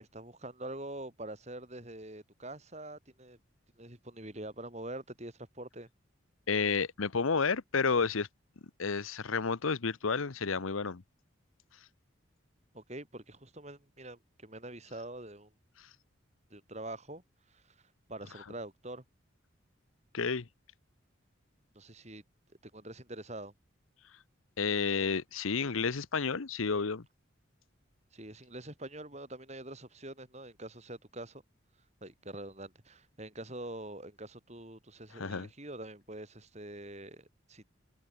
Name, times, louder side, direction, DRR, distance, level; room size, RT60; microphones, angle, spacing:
voice 1, 0.0-3.4 3.8-5.9 12.7-15.5 16.5-17.2 17.5-17.8 18.1-19.0 21.7-22.2 22.6-23.5 28.1-31.4 32.0-37.7, right 1 dB, 35° right, 6.0 m, -45 dB
voice 2, 6.5-8.3 8.8-11.0 20.1-20.5 24.6-27.0 35.1-35.5, left 5 dB, 90° left, 0.9 m, -31 dB
head